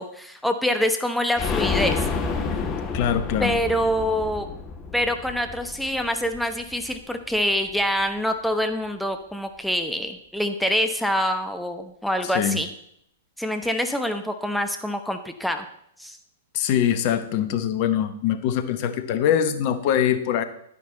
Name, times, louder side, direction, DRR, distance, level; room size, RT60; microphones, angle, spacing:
voice 1, 0.0-2.1 3.4-4.5 4.9-12.7 13.4-15.6 16.0-16.2, equal, ahead, 6 dB, 0.9 m, -25 dB
sound 1, 1.4-7.0 7.3-7.4 7.7-7.8, left 4 dB, 25° left, 1.3 m, -29 dB
voice 2, 2.9-3.5 12.3-12.6 16.5-20.4, left 9 dB, 45° left, 11 dB, 1.0 m, -23 dB
10.5 x 10.0 x 3.9 m, 0.71 s
figure-of-eight pair, 105°, 0 cm